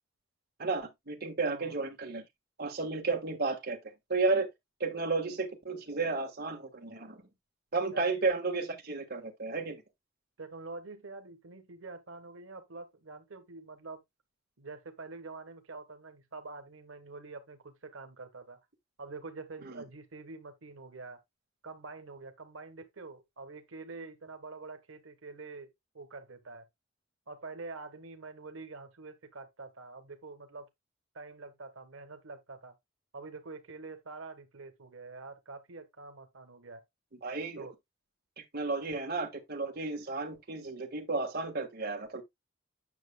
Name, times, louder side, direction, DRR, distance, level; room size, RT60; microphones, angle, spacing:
voice 1, 0.6-2.2 2.6-3.8 4.1-4.5 4.8-7.2 7.7-9.8 19.6-19.8 37.2-37.7 38.4-42.2, right 3 dB, 50° right, 1.6 m, -33 dB
voice 2, 1.4-1.8 7.9-8.0 10.4-14.0 14.6-18.6 19.0-21.2 21.6-25.7 25.9-26.6 27.3-30.7 31.1-32.7 33.1-36.8 37.6-37.7, right 3 dB, 85° right, 1.4 m, -46 dB
9.3 x 6.6 x 2.3 m
head